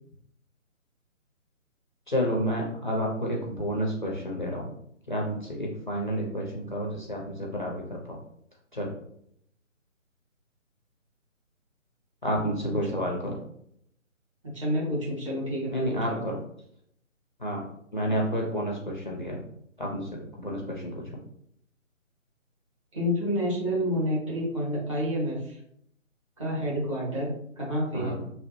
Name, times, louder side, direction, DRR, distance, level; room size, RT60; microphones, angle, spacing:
voice 1, 2.1-4.7 5.1-8.2 8.7-8.9 12.2-13.4 15.7-16.4 17.4-17.6 17.9-19.4 19.8-21.1 27.9-28.3, equal, 40° left, -2 dB, 0.5 m, -30 dB
voice 2, 12.7-13.0 14.5-16.2 22.9-25.6 26.4-28.2, equal, 25° right, -7 dB, 1.0 m, -29 dB
3.3 x 2.2 x 3.0 m, 0.71 s
figure-of-eight pair, 145°, 40 cm